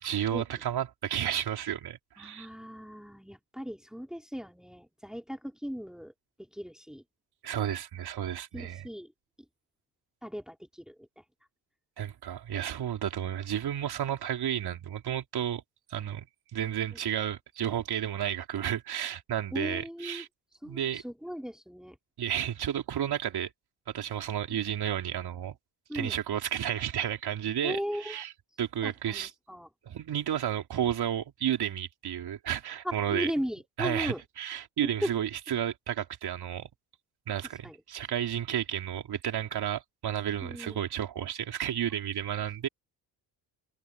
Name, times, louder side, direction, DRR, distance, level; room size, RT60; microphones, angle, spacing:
voice 1, 0.0-2.5 7.4-8.9 12.0-15.6 15.9-16.3 16.5-20.3 20.6-21.0 22.2-23.5 23.9-25.5 25.9-28.3 28.6-29.3 29.9-33.3 33.8-36.7 37.3-42.7, right 10 dB, 60° right, 3.9 m, -32 dB
voice 2, 2.2-6.1 6.5-7.0 8.5-9.1 10.2-11.1 19.5-20.2 20.6-22.0 25.9-26.2 27.6-28.2 28.8-29.7 32.8-34.2 35.0-35.1 37.6-37.8 40.4-40.8 42.6-42.7, equal, ahead, 3.9 m, -37 dB
cardioid pair, 85°, 43 cm